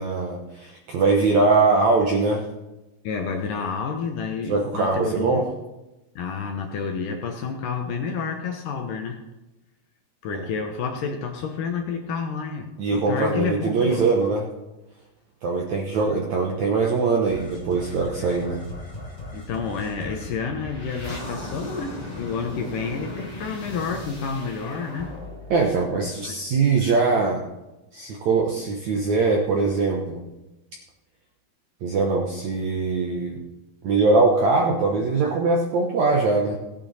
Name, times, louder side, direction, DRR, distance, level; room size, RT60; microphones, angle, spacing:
voice 1, 0.0-2.5 4.5-5.5 10.3-10.5 12.8-14.5 15.4-18.6 25.5-27.4 27.9-30.3 31.8-33.4 33.8-36.6, right 3 dB, 70° right, 1 dB, 1.7 m, -22 dB
voice 2, 3.0-5.5 6.2-9.2 10.2-14.0 18.2-18.3 19.3-25.1 26.2-26.4, left 5 dB, 70° left, 4 dB, 2.2 m, -29 dB
sound 1, 17.3-26.6, left 1 dB, 25° left, 0.8 m, -37 dB
17.0 x 8.8 x 4.2 m, 1.0 s
omnidirectional pair, 4.7 m